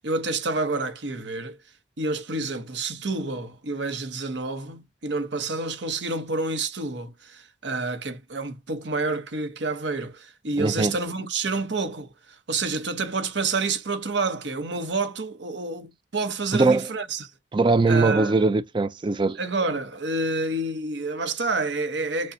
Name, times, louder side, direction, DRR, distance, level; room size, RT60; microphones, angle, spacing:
voice 1, 0.0-1.6 2.0-12.1 12.5-17.3 17.9-18.3 19.4-22.3, right 3 dB, 70° right, 1.0 m, -28 dB
voice 2, 10.6-10.9 16.5-16.9 17.5-19.4, right 3 dB, 25° right, 0.4 m, -21 dB
6.5 x 2.3 x 2.7 m
head